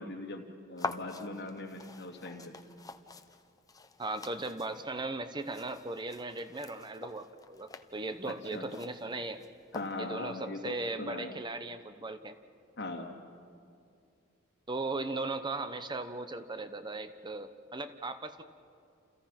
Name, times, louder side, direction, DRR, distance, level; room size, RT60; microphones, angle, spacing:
voice 1, 0.0-2.5 8.3-8.7 9.7-11.4 12.8-13.1, left 2 dB, 55° left, 2 dB, 2.8 m, -40 dB
sound 1, 0.8-10.3, left 2 dB, 20° left, 1.0 m, -46 dB
voice 2, 4.0-9.4 10.0-12.3 14.7-18.4, right 2 dB, 20° right, 10 dB, 0.9 m, -38 dB
29.5 x 29.0 x 5.9 m, 2.4 s
head